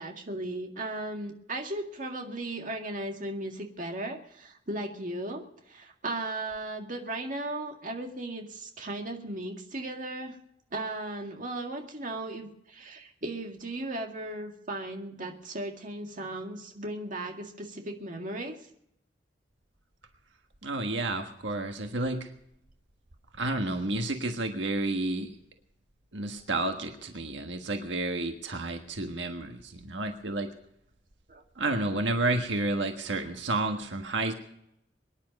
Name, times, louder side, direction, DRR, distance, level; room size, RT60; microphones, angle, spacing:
voice 1, 0.0-10.4 10.7-18.6 31.3-31.4, right 2 dB, 45° right, 3 dB, 2.0 m, -36 dB
voice 2, 20.6-22.3 23.3-25.3 26.1-30.5 31.6-34.3, right 2 dB, 80° right, 5 dB, 1.5 m, -30 dB
23.5 x 10.5 x 5.3 m, 0.75 s
head